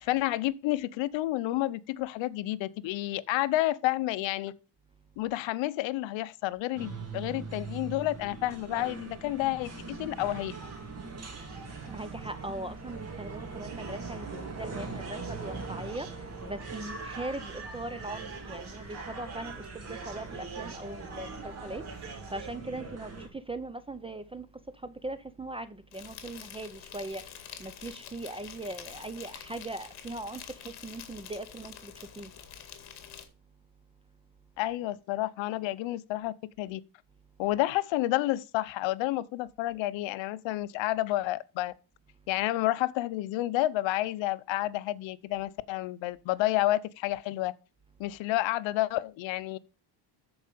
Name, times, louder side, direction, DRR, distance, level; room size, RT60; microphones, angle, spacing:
voice 1, 0.0-4.5 5.2-10.5 34.6-36.8 37.4-41.7 42.3-47.5 48.0-49.6, left 16 dB, 65° left, 0.8 m, -30 dB
sound 1, 6.8-23.3, right 4 dB, 30° right, 2.7 m, -42 dB
sound 2, 9.6-22.6, right 4 dB, 50° right, 3.3 m, -47 dB
voice 2, 11.9-16.1 16.4-19.5 19.9-21.8 22.3-23.1 23.5-24.5 24.8-25.7 25.9-27.2 27.6-30.4 30.8-31.9 32.2-32.3, right 2 dB, 10° right, 0.4 m, -39 dB
Insect, 25.9-33.2, left 9 dB, 50° left, 2.1 m, -47 dB
13.5 x 4.9 x 5.2 m
cardioid pair, 120°, 49 cm